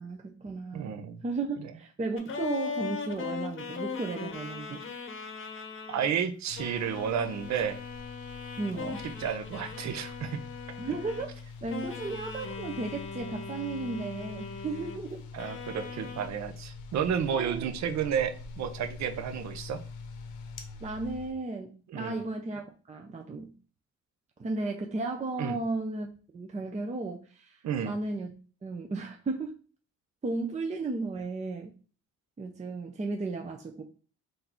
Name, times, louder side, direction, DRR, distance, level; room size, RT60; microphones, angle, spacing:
voice 1, 0.0-4.8 8.6-9.0 10.8-15.2 15.8-15.9 17.3-17.7 20.8-23.5 24.4-26.1 26.3-27.6 27.8-28.3 28.6-29.5 30.2-31.7 32.4-33.8, right 3 dB, 25° right, 3 dB, 0.6 m, -34 dB
voice 2, 0.7-1.2 1.6-1.7 5.9-7.8 8.8-8.9 9.2-10.4 15.3-19.8 21.9-22.2 25.4-25.6 27.6-28.0, right 8 dB, 65° right, 9 dB, 0.7 m, -31 dB
sound 1, 2.2-6.1 6.5-11.4 11.7-15.0 15.4-16.3, left 5 dB, 45° left, 0.8 m, -39 dB
sound 2, 6.5-21.3, left 4 dB, 85° left, 0.7 m, -45 dB
3.8 x 2.7 x 4.4 m, 0.37 s
cardioid pair, 90°, 30 cm